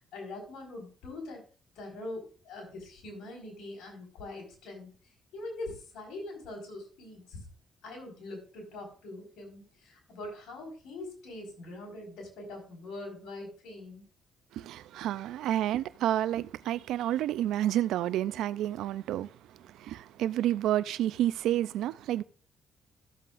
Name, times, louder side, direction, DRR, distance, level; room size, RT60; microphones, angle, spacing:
voice 1, 0.1-1.4 1.7-4.9 5.3-7.4 7.8-14.0, left 2 dB, 80° left, 4.9 m, -43 dB
voice 2, 14.5-19.3 19.6-22.2, right 12 dB, 85° right, 0.4 m, -30 dB
14.5 x 7.6 x 2.5 m
cardioid pair, 90°, 0 cm